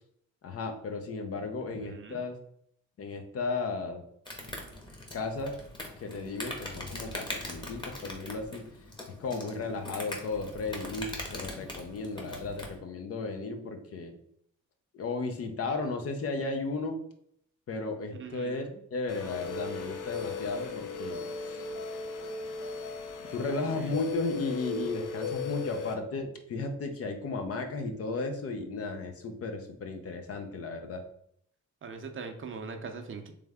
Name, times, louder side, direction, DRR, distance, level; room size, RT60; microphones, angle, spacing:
voice 1, 0.4-2.4 3.0-4.0 5.1-5.5 6.0-8.7 9.1-14.1 14.9-17.0 17.7-21.6 23.3-31.0, left 3 dB, 50° left, 6 dB, 0.7 m, -34 dB
voice 2, 1.6-2.2 18.2-18.8 23.5-24.0 31.8-33.3, right 4 dB, 45° right, 5 dB, 0.6 m, -42 dB
Insect, 4.3-12.8, left 1 dB, 15° left, 1.0 m, -41 dB
sound 1, 19.1-25.9, left 4 dB, 85° left, 0.7 m, -37 dB
3.4 x 3.2 x 3.5 m, 0.69 s
cardioid pair, 90°, 30 cm